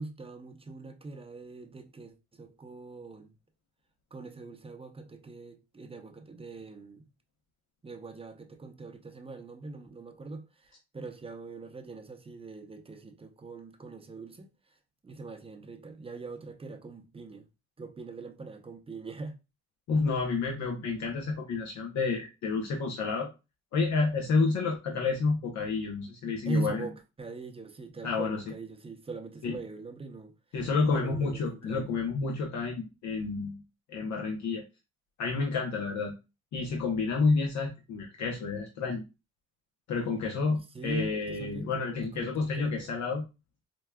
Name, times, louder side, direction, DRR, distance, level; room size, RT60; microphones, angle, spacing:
voice 1, 0.0-3.3 4.1-7.1 7.8-14.5 15.0-17.5 17.8-19.4 26.4-30.3 30.9-31.9 40.7-42.9, right 3 dB, 20° right, 0.6 m, -41 dB
voice 2, 19.9-23.3 23.7-26.9 28.0-28.4 29.4-29.5 30.5-33.6 33.9-34.6 35.2-36.1 36.5-39.0 39.9-43.2, left 4 dB, 70° left, 0.7 m, -30 dB
4.5 x 2.3 x 2.2 m
cardioid pair, 90°, 30 cm